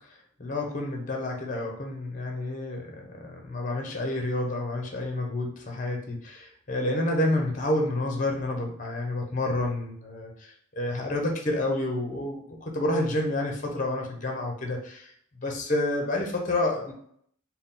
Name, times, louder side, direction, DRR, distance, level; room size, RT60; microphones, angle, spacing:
voice 1, 0.4-16.9, left 1 dB, 40° left, 1 dB, 0.8 m, -29 dB
4.1 x 2.2 x 3.7 m, 0.64 s
head